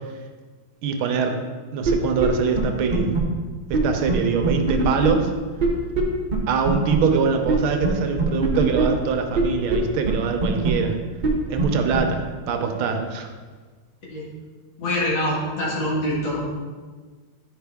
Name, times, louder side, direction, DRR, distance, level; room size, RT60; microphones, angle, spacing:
voice 1, 0.8-1.4 1.7-3.1 3.7-5.3 6.5-11.0 11.5-13.3, right 6 dB, 80° right, 5 dB, 1.6 m, -23 dB
sound 1, 1.8-1.9 2.2-2.3 2.6-2.7 2.9-3.2 3.7-3.8 4.1-4.2 4.4-5.1 5.6-5.7 5.9-6.0 6.3-6.4 6.7-6.9 7.5-7.6 7.8-7.9 8.2-8.8 9.3-9.4 9.7-9.8 10.1-10.2 10.4-10.7 11.2-11.3 11.6-11.7 11.9-12.0, right 4 dB, 65° right, 0.4 m, -22 dB
voice 2, 14.8-16.4, left 1 dB, 60° left, -5 dB, 2.3 m, -25 dB
9.7 x 5.0 x 3.4 m, 1.4 s
omnidirectional pair, 2.3 m